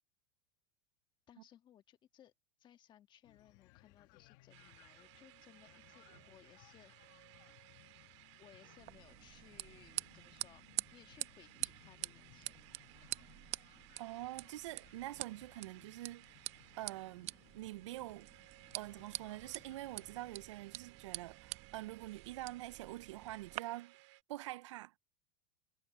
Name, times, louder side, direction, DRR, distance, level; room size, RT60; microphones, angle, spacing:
voice 1, 1.3-2.3 2.6-6.9 7.3-7.6 8.4-10.7 10.9-12.7, left 10 dB, 30° left, 1.5 m, -63 dB
sound 1, 3.2-20.4, left 20 dB, 55° left, 1.6 m, -65 dB
sound 2, 4.5-24.2, right 21 dB, 70° right, 2.5 m, -61 dB
sound 3, 8.8-23.6, right 18 dB, 45° right, 0.9 m, -47 dB
voice 2, 14.0-16.4 16.8-18.3 18.7-23.9 24.3-25.0, right 16 dB, 90° right, 0.4 m, -46 dB
supercardioid pair, 135°, 15 cm